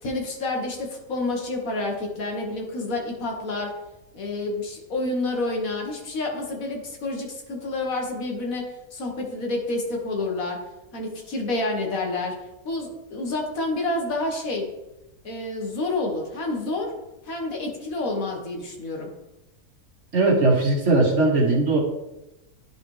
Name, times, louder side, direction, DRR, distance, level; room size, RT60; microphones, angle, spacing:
voice 1, 0.0-3.7 4.1-10.6 10.9-12.4 12.7-14.7 15.2-16.9 17.3-19.1, left 2 dB, 65° left, 1 dB, 1.6 m, -29 dB
voice 2, 20.1-21.8, right 2 dB, 50° right, -1 dB, 1.5 m, -19 dB
11.0 x 4.1 x 3.1 m, 0.96 s
omnidirectional pair, 1.6 m